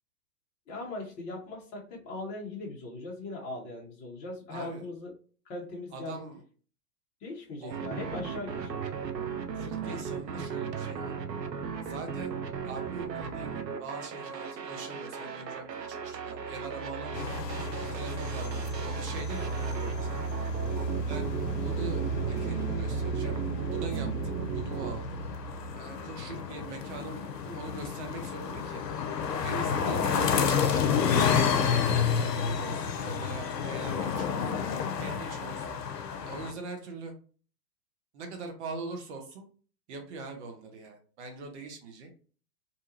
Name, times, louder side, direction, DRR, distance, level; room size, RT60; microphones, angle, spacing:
voice 1, 0.7-5.1 5.5-6.2 7.2-8.8, left 2 dB, 15° left, -2 dB, 0.6 m, -39 dB
voice 2, 4.5-4.9 5.9-6.4 7.6-7.8 9.5-11.1 11.8-17.4 17.9-20.3 21.1-25.2 25.7-28.8 29.4-34.4 35.0-35.7 36.2-37.1 38.1-39.5 39.9-42.1, right 3 dB, 45° right, 4 dB, 0.9 m, -42 dB
sound 1, 7.7-25.0, right 6 dB, 85° right, 0.6 m, -37 dB
sound 2, 15.9-26.1, right 3 dB, 50° left, 0.8 m, -35 dB
sound 3, 17.1-36.5, left 6 dB, 75° left, 0.6 m, -31 dB
2.7 x 2.3 x 2.6 m, 0.40 s
figure-of-eight pair, 110°, 49 cm